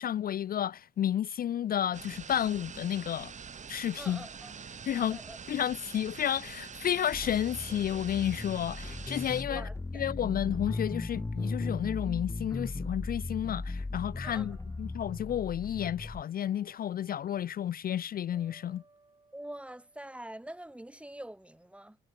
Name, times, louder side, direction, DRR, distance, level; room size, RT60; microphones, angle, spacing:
voice 1, 0.0-3.3 3.7-4.3 4.9-5.2 5.5-9.7 9.9-18.8, left 10 dB, 50° left, 0.4 m, -31 dB
sound 1, 1.9-9.4, right 6 dB, 35° right, 1.3 m, -45 dB
voice 2, 4.0-4.5 4.9-5.4 9.5-10.1 14.2-14.5 19.3-22.0, right 1 dB, 5° right, 1.2 m, -45 dB
sound 2, 7.1-16.2, left 2 dB, 15° left, 0.9 m, -37 dB
sound 3, 10.6-13.0 14.4-15.4 16.4-17.7 18.3-20.7, right 3 dB, 20° right, 4.5 m, -64 dB
cardioid pair, 90°, 20 cm